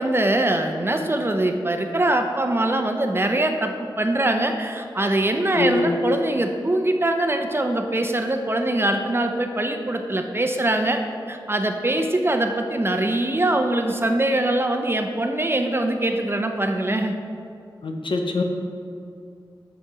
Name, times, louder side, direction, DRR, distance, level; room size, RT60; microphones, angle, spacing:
voice 1, 0.0-11.0 11.3-17.2, right 1 dB, 25° right, 5 dB, 0.7 m, -23 dB
voice 2, 5.6-6.0 17.8-18.4, left 3 dB, 75° left, 2 dB, 0.8 m, -23 dB
6.6 x 6.0 x 4.8 m, 2.5 s
cardioid pair, 55°, 9 cm